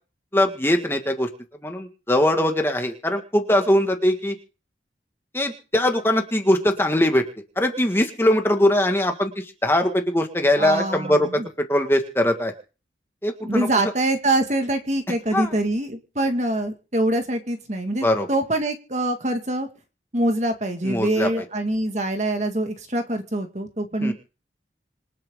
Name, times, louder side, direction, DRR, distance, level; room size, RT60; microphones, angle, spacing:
voice 1, 0.3-1.3 1.6-4.4 5.3-7.2 7.5-12.5 13.2-13.7 15.3-15.5 18.0-18.3 20.8-21.4 24.0-24.1, left 1 dB, 15° left, 4 dB, 1.8 m, -21 dB
voice 2, 10.6-11.5 13.4-19.7 20.1-24.1, right 1 dB, 40° right, 6 dB, 1.9 m, -24 dB
26.5 x 8.8 x 3.7 m, 0.36 s
head